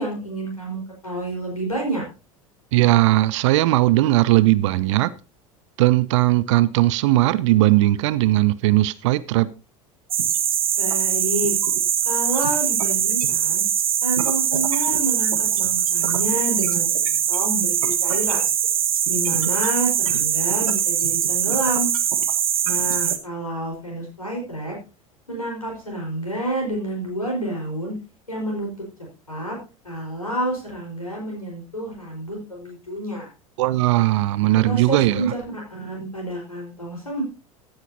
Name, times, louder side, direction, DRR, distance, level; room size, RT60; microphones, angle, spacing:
voice 1, 0.0-2.0 10.8-11.5 12.0-13.6 14.0-18.5 19.1-21.9 22.6-24.8 25.3-27.9 28.3-28.9 29.3-29.6 29.8-33.3 34.6-37.2, right 1 dB, 85° left, -2 dB, 4.7 m, -29 dB
voice 2, 2.7-5.1 5.8-9.5 33.6-35.3, right 16 dB, 55° right, 18 dB, 0.6 m, -18 dB
sound 1, 10.1-23.2, right 9 dB, 70° right, 1.4 m, -22 dB
15.5 x 10.0 x 2.8 m, 0.31 s
figure-of-eight pair, 75°, 18 cm